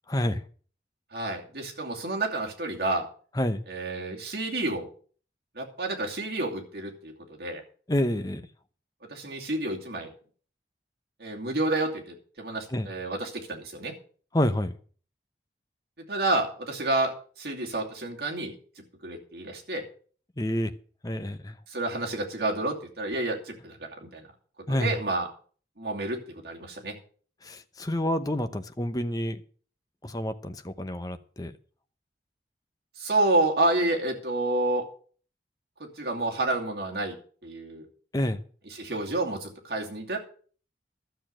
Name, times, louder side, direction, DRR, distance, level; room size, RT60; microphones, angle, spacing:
voice 1, 0.1-0.4 3.4-3.6 7.9-8.4 12.7-12.9 14.3-14.8 20.4-20.7 21.0-21.6 24.7-24.9 27.4-29.4 30.0-31.5 38.1-38.4, left 1 dB, 20° left, 0.8 m, -28 dB
voice 2, 1.1-3.1 3.7-4.9 5.5-7.6 9.1-10.1 11.2-13.9 16.1-18.6 19.0-19.8 21.7-24.3 24.7-25.3 25.8-26.2 26.4-27.0 33.0-34.8 36.0-37.2 37.4-37.9 38.7-40.2, right 2 dB, 60° right, 2.7 m, -29 dB
12.5 x 6.9 x 7.6 m
head